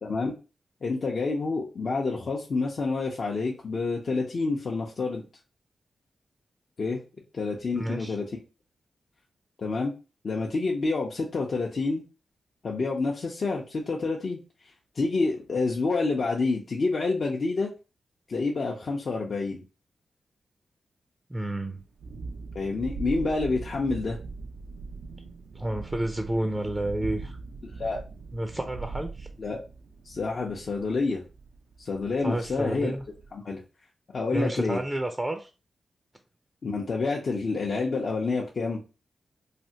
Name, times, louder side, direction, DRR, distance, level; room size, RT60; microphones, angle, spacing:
voice 1, 0.0-0.3 0.8-5.2 6.8-7.0 7.3-8.2 9.6-9.9 10.2-12.0 12.6-14.4 14.9-17.7 18.3-19.6 22.5-24.2 27.6-28.0 29.4-29.6 30.0-31.2 31.8-32.9 33.3-33.6 34.1-34.8 36.6-38.8, left 3 dB, 60° left, -2 dB, 0.6 m, -28 dB
voice 2, 7.7-8.2 21.3-21.8 25.5-27.4 28.3-29.3 32.2-33.0 34.3-35.5, right 1 dB, 20° right, 5 dB, 0.5 m, -30 dB
Thunderstorm, 21.8-33.3, right 3 dB, 80° right, 0.5 m, -41 dB
3.3 x 2.4 x 2.8 m, 0.31 s
cardioid pair, 50°, 0 cm